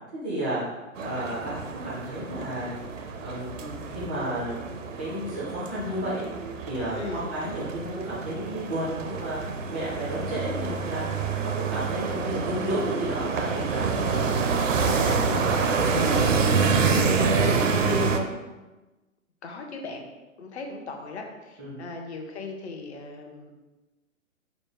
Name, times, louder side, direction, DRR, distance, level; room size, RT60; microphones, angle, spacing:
voice 1, 0.2-0.6 1.0-2.8 3.2-4.6 5.0-6.3 6.7-14.4 14.8-18.2 21.6-21.8, equal, 5° right, -9 dB, 0.4 m, -32 dB
sound 1, 1.0-18.2, right 5 dB, 65° right, 0.6 m, -27 dB
voice 2, 7.0-7.3 11.8-11.9 17.4-17.6 19.4-20.1 20.4-23.5, left 3 dB, 50° left, 3 dB, 0.8 m, -38 dB
5.1 x 2.1 x 4.7 m, 1.1 s
figure-of-eight pair, 125°, 42 cm